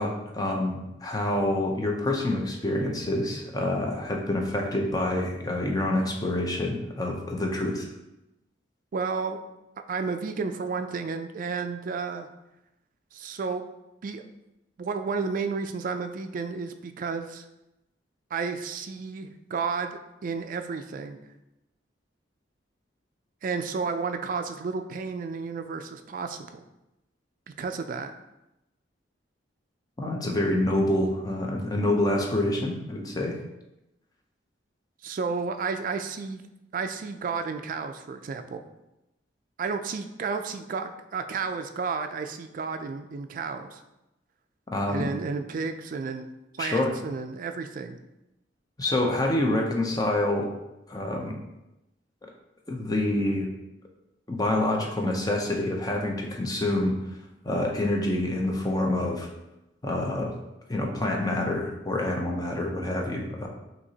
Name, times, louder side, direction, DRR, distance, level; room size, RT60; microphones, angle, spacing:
voice 1, 0.0-7.9 30.0-33.4 44.7-45.1 46.6-46.9 48.8-50.5 50.9-51.4 52.7-53.5 54.3-57.0 57.4-59.3 59.8-60.3 60.7-63.5, left 1 dB, 20° left, 1 dB, 0.6 m, -27 dB
voice 2, 8.9-9.4 9.9-12.3 13.1-13.6 14.0-14.2 14.8-17.4 18.3-21.2 23.4-26.6 27.5-28.1 35.0-36.4 36.7-38.6 39.6-43.8 44.9-46.3 46.6-48.0, right 5 dB, 45° right, 7 dB, 0.3 m, -32 dB
6.0 x 2.8 x 2.8 m, 0.93 s
head